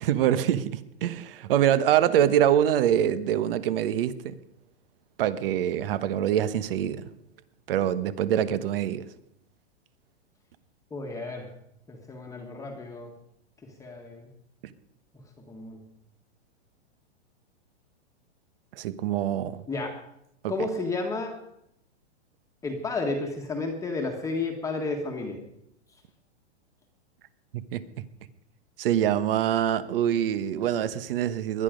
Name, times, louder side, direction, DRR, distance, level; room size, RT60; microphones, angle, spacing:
voice 1, 0.0-4.4 5.2-7.0 7.7-9.0 18.7-19.6 20.4-20.7 27.5-27.8 28.8-31.6, right 10 dB, 55° right, 14 dB, 1.2 m, -25 dB
voice 2, 10.9-11.5 11.9-13.1 13.6-14.3 15.5-15.8 19.7-20.0 20.5-21.4 22.6-25.4, left 3 dB, 10° left, 2 dB, 1.5 m, -32 dB
20.0 x 11.5 x 5.2 m, 0.78 s
hypercardioid pair, 155°, 34 cm